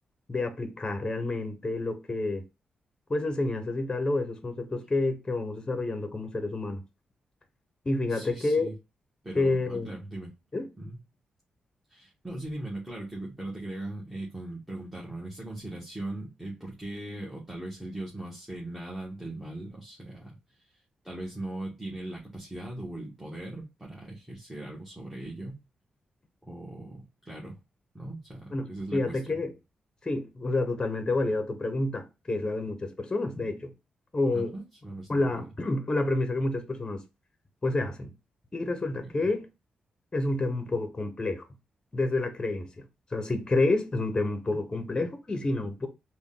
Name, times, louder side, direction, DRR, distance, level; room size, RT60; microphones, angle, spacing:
voice 1, 0.3-2.4 3.1-6.8 7.8-8.7 9.4-9.9 10.5-10.7 28.5-29.5 30.0-33.7 34.1-34.5 35.1-37.0 37.6-38.1 38.5-39.5 40.1-41.4 41.9-42.8 43.1-45.9, left 2 dB, 30° left, 0.8 m, -29 dB
voice 2, 8.1-8.7 9.2-10.3 10.8-11.0 11.9-20.8 21.0-25.6 26.4-27.6 27.9-29.4 34.3-35.5 39.0-39.1, right 1 dB, 5° right, 1.1 m, -39 dB
3.6 x 2.2 x 3.6 m
cardioid pair, 85°, 3 cm